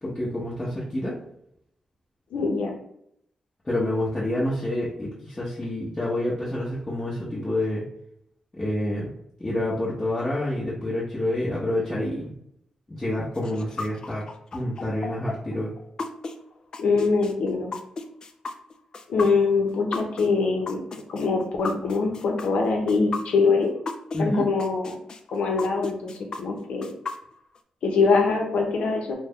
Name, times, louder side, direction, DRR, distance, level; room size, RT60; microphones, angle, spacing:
voice 1, 0.0-1.1 3.6-7.8 8.5-9.1 9.4-12.3 12.9-14.2 14.5-15.7 24.1-24.5, left 1 dB, 20° left, -8 dB, 0.8 m, -28 dB
voice 2, 2.3-2.7 16.8-17.7 19.1-20.8 21.1-23.7 24.2-25.0 25.3-26.9 27.8-29.1, left 4 dB, 85° left, 1 dB, 0.7 m, -23 dB
sound 1, 13.3-24.2 24.6-27.6, left 4 dB, 40° left, 0.3 m, -34 dB
3.1 x 2.1 x 3.6 m, 0.73 s
wide cardioid pair, 130°, 2 cm